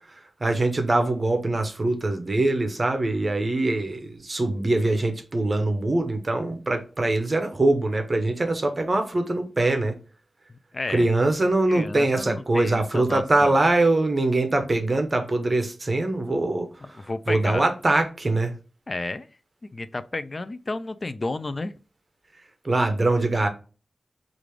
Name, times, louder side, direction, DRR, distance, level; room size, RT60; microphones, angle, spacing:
voice 1, 0.4-9.9 10.9-16.7 17.3-18.5 22.6-23.5, right 2 dB, 30° right, 0.7 m, -23 dB
voice 2, 10.5-11.1 11.7-13.5 16.8-17.7 18.9-19.3 19.7-21.7, left 2 dB, 35° left, 0.3 m, -32 dB
4.9 x 2.5 x 3.2 m
wide cardioid pair, 130°, 0 cm